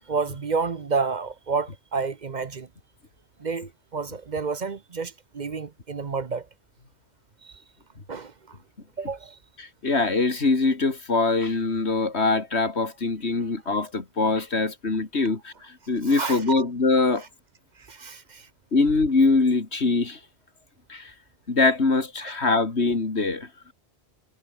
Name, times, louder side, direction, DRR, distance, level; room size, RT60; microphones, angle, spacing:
voice 1, 0.1-2.7 3.4-6.5 7.4-7.5 8.1-8.6 9.0-9.4 16.1-16.6 17.9-18.5, right 4 dB, 45° right, 1.0 m, -30 dB
voice 2, 9.6-17.2 18.7-20.2 20.9-21.1 21.5-23.5, left 3 dB, 85° left, 3.0 m, -23 dB
omnidirectional pair, 1.1 m